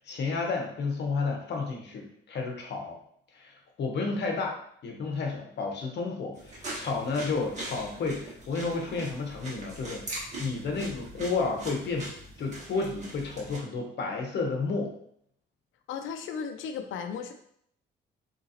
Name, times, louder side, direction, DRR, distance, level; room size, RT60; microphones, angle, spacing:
voice 1, 0.1-3.0 3.3-12.1 12.4-14.9, left 4 dB, 60° left, 1 dB, 0.9 m, -31 dB
sound 1, 6.3-13.6, right 1 dB, 35° right, 1.5 m, -41 dB
voice 2, 15.9-17.3, left 6 dB, 75° left, 6 dB, 0.5 m, -35 dB
3.8 x 3.0 x 2.8 m, 0.67 s
cardioid pair, 90°, 20 cm